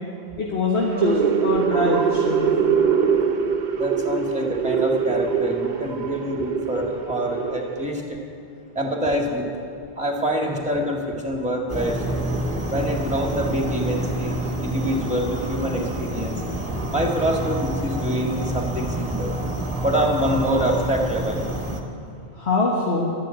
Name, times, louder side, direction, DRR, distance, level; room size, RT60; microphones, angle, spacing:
voice 1, 0.4-2.8 22.3-23.1, left 2 dB, 75° left, -3 dB, 1.7 m, -24 dB
sound 1, 0.8-8.0, right 7 dB, 50° right, 0.9 m, -23 dB
voice 2, 3.7-8.2 8.7-9.7 10.0-12.0 12.7-16.4 16.9-19.3 19.8-21.4, equal, 5° right, 0 dB, 2.1 m, -25 dB
sound 2, 11.7-21.8, right 1 dB, 30° right, 1.4 m, -28 dB
12.5 x 11.0 x 8.9 m, 2.5 s
omnidirectional pair, 1.1 m